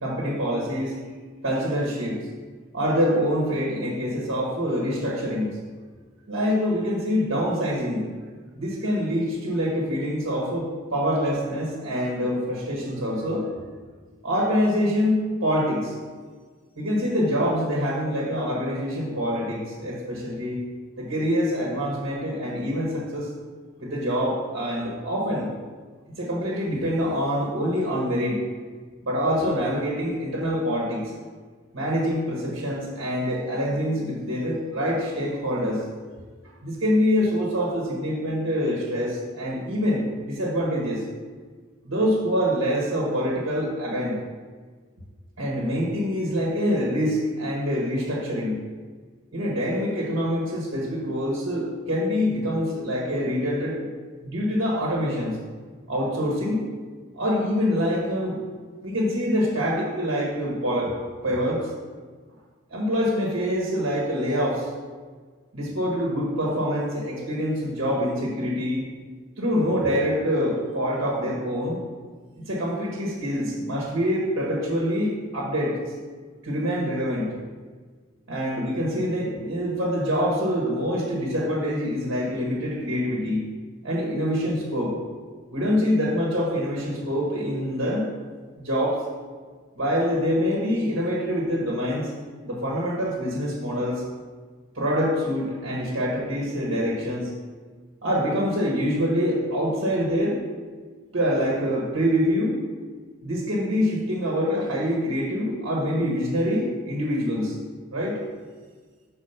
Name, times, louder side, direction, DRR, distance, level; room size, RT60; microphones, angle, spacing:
voice 1, 0.0-0.9 1.4-2.2 2.7-5.6 6.3-8.1 8.6-13.5 14.2-15.9 16.8-20.6 21.0-23.3 23.8-25.5 26.2-28.4 29.0-31.1 31.7-35.8 36.6-41.0 41.8-44.2 45.4-48.6 49.3-53.8 54.2-55.4 55.9-56.7 57.1-58.4 58.8-60.9 61.2-61.7 62.7-64.7 65.5-68.8 69.4-71.8 72.4-75.8 76.4-77.3 78.3-83.4 83.8-84.9 85.5-88.1 88.6-89.0 89.8-92.1 92.4-94.0 94.7-97.3 98.0-100.4 101.1-102.6 103.2-107.5 107.9-108.2, equal, 75° right, -4 dB, 1.4 m, -25 dB
5.8 x 4.3 x 5.6 m, 1.5 s
head